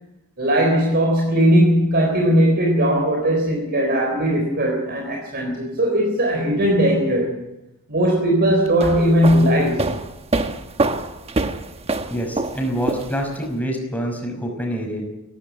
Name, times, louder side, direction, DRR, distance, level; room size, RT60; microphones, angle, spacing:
voice 1, 0.4-7.4 7.9-9.9, equal, 50° right, 1 dB, 3.8 m, -18 dB
sound 1, 8.7-13.5, right 2 dB, 30° right, 1.1 m, -25 dB
voice 2, 12.1-15.0, equal, 5° left, 2 dB, 5.6 m, -26 dB
17.5 x 16.0 x 9.4 m, 0.93 s
head